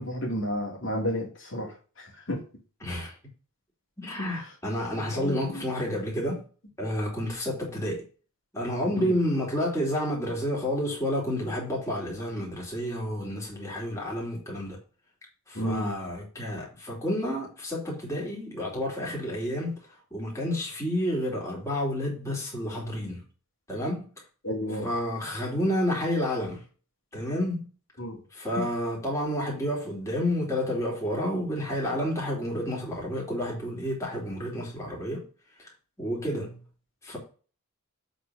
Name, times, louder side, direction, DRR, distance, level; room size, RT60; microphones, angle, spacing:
voice 1, 0.0-2.4 4.3-4.4 5.1-5.6 8.9-9.1 15.5-15.9 24.4-24.9 28.0-28.2 28.6-28.7, equal, 55° left, 2.4 m, -32 dB
voice 2, 2.8-3.1 4.0-6.4 6.8-8.0 8.5-14.8 15.5-19.8 20.1-23.2 23.7-24.1 24.8-26.6 27.1-27.7 28.3-35.2 35.6-35.7 36.0-36.6 37.0-37.2, equal, 15° left, 3.2 m, -30 dB
7.9 x 4.1 x 6.4 m
head